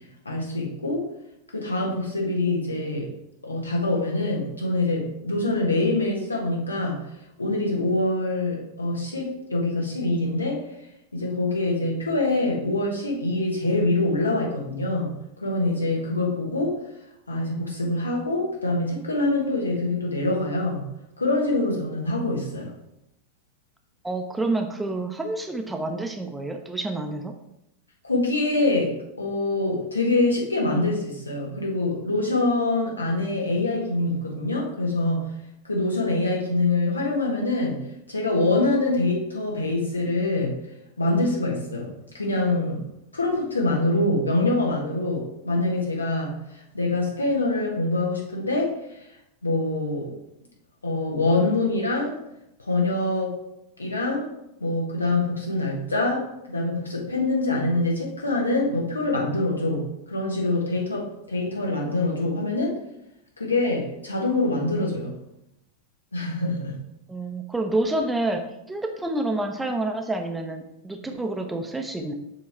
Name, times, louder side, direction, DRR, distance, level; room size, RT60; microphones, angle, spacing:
voice 1, 0.2-1.1 1.5-3.1 3.4-7.0 7.4-10.6 11.1-15.1 15.4-16.8 17.3-20.9 21.2-22.7 28.0-35.3 35.6-40.6 41.0-42.8 43.1-46.3 46.7-48.7 49.4-50.1 50.8-52.2 52.7-53.4 53.8-54.3 54.6-62.7 63.4-65.1 66.1-66.8, left 2 dB, 80° left, -1 dB, 1.4 m, -25 dB
voice 2, 24.0-27.3 67.1-72.1, right 2 dB, 5° right, 4 dB, 0.6 m, -28 dB
6.9 x 3.1 x 4.4 m, 0.83 s
figure-of-eight pair, 90°, 0 cm